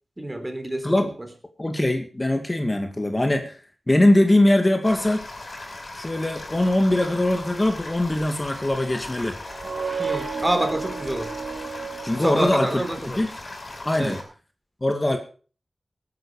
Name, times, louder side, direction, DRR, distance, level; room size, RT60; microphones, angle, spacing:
voice 1, 0.2-0.9 10.0-11.3 12.2-13.3 13.9-14.2, right 1 dB, 20° right, 7 dB, 3.7 m, -27 dB
voice 2, 1.6-3.6 3.9-5.2 5.9-9.4 12.0-12.8 13.1-13.3 13.8-14.2 14.8-15.2, left 1 dB, 25° left, 5 dB, 2.3 m, -21 dB
sound 1, 4.8-14.2, left 2 dB, 55° left, 6.4 m, -38 dB
sound 2, 9.4-13.0, right 5 dB, 50° right, 1.5 m, -32 dB
18.5 x 10.5 x 5.0 m, 0.38 s
wide cardioid pair, 60°, 0 cm